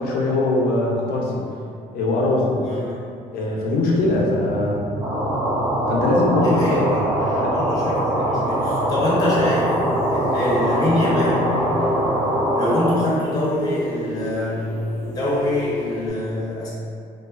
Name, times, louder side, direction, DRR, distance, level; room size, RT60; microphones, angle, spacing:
voice 1, 0.0-1.4 1.9-2.6 3.3-4.9 5.9-7.0 7.4-7.5, left 2 dB, 75° left, -2 dB, 0.5 m, -21 dB
voice 2, 2.6-3.0 6.5-9.8 10.1-11.5 12.5-16.7, left 1 dB, 25° left, -7 dB, 0.6 m, -25 dB
sound 1, 4.0-12.5, right 1 dB, 85° right, 0.6 m, -32 dB
sound 2, 5.0-12.9, right 1 dB, 25° right, 0.5 m, -23 dB
sound 3, 9.2-16.1, left 1 dB, 45° right, 0.9 m, -30 dB
2.4 x 2.2 x 2.3 m, 2.4 s
cardioid pair, 110°, 16 cm